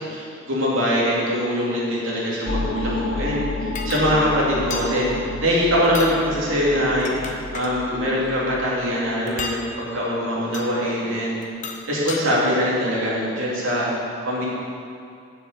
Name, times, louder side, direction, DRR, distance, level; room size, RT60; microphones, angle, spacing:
voice 1, 0.0-5.1 5.4-7.1 7.5-11.3 11.9-13.9 14.2-14.5, equal, 75° right, -6 dB, 3.0 m, -22 dB
sound 1, 2.5-8.7, left 3 dB, 65° left, 0.7 m, -31 dB
sound 2, 3.8-4.1 4.7-4.9 5.8-6.2 6.8-7.7 9.3-9.6 10.5-10.7 11.4-12.2, left 5 dB, 40° left, 0.8 m, -33 dB
7.9 x 6.8 x 8.3 m, 2.5 s
head